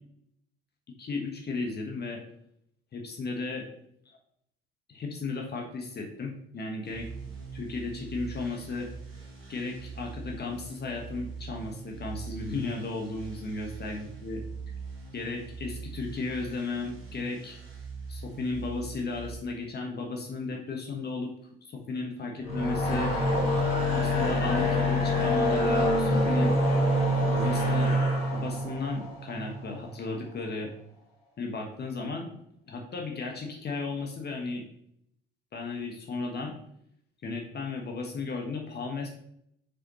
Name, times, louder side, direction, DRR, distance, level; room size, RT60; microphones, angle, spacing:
voice 1, 1.0-2.2 2.9-3.7 4.9-7.1 7.5-8.9 9.5-14.4 15.1-17.6 18.1-21.3 21.7-23.1 23.9-26.6 27.2-27.9 28.3-30.7 31.4-32.3 32.7-34.6 35.5-36.5 37.2-39.1, left 3 dB, 35° left, 1 dB, 1.2 m, -34 dB
sound 1, 6.8-19.3, right 5 dB, 75° right, 1.8 m, -42 dB
sound 2, 22.4-29.7, left 1 dB, 80° left, 1.7 m, -26 dB
6.3 x 5.1 x 3.0 m, 0.72 s
figure-of-eight pair, 55°, 29 cm